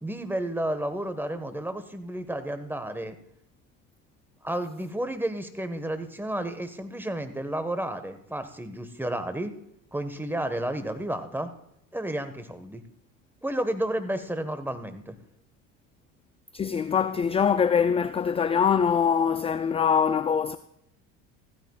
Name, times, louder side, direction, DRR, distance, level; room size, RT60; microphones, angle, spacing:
voice 1, 0.0-3.1 4.4-9.5 9.9-11.5 11.9-12.8 13.4-15.1, right 1 dB, 5° right, 1.5 m, -31 dB
voice 2, 16.5-20.6, left 7 dB, 15° left, 0.4 m, -23 dB
15.0 x 13.5 x 2.4 m
hypercardioid pair, 70°, 41 cm